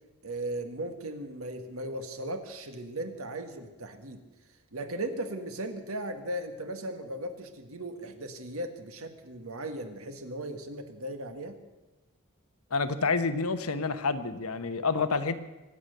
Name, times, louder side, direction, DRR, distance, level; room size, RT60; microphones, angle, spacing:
voice 1, 0.2-4.2 4.7-11.6, right 1 dB, 75° right, 7 dB, 1.7 m, -37 dB
voice 2, 12.7-15.4, left 4 dB, 80° left, 10 dB, 1.1 m, -28 dB
24.0 x 8.9 x 6.7 m, 1.1 s
head